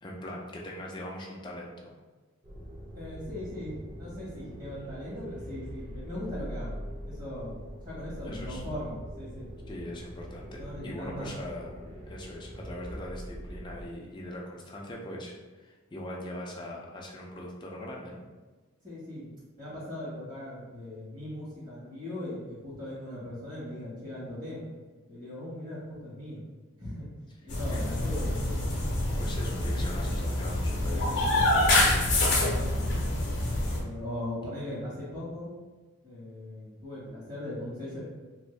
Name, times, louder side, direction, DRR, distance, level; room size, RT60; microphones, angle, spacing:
voice 1, 0.0-1.9 7.9-8.6 9.7-11.8 12.1-18.2 27.7-27.9 29.2-31.9, left 1 dB, 20° left, -2 dB, 0.4 m, -41 dB
sound 1, 2.4-13.9, equal, 20° right, 0.7 m, -43 dB
voice 2, 2.9-6.8 7.1-9.5 10.5-11.3 18.8-19.3 19.6-24.7 25.1-26.4 26.8-28.6 30.9-31.2 32.2-33.0 33.7-35.5 36.0-38.0, left 1 dB, 40° right, -8 dB, 1.3 m, -39 dB
sound 2, 27.5-33.8, left 1 dB, 50° left, 0.7 m, -26 dB
3.0 x 2.6 x 3.2 m, 1.3 s
head